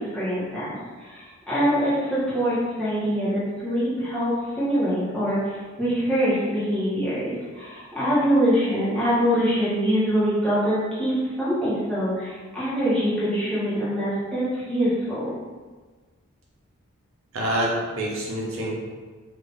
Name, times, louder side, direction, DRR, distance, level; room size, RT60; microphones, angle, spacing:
voice 1, 0.0-11.1 11.4-15.3, equal, 5° left, -12 dB, 1.1 m, -24 dB
voice 2, 17.3-18.7, right 1 dB, 90° right, -4 dB, 0.8 m, -26 dB
2.7 x 2.6 x 3.4 m, 1.4 s
head